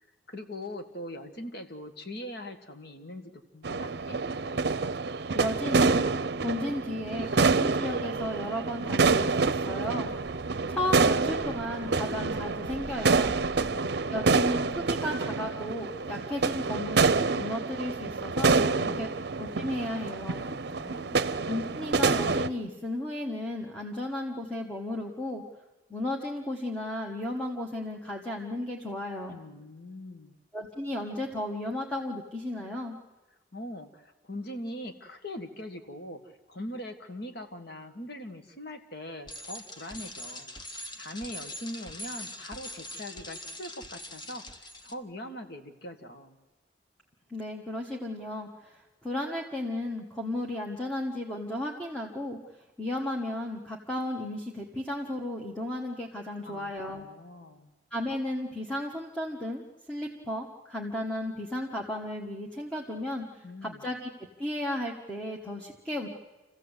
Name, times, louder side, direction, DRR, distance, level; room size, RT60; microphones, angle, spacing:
voice 1, 0.3-4.2 13.0-14.1 18.5-19.1 19.9-20.1 20.5-21.5 29.3-30.3 33.5-36.2 36.5-46.4 56.4-57.7 63.4-63.9, left 1 dB, 60° left, 6 dB, 1.9 m, -42 dB
sound 1, 3.6-22.5, right 4 dB, 60° right, 0.7 m, -27 dB
voice 2, 5.3-10.1 10.7-13.4 14.1-18.6 19.0-19.1 19.4-20.5 21.5-25.4 25.9-29.4 30.5-33.0 47.3-52.4 52.8-57.1 57.9-64.1 64.4-66.1, left 1 dB, 5° left, -1 dB, 1.4 m, -34 dB
Bicycle, 39.3-44.9, left 1 dB, 25° left, 1.2 m, -42 dB
27.5 x 15.5 x 8.2 m, 1.1 s
head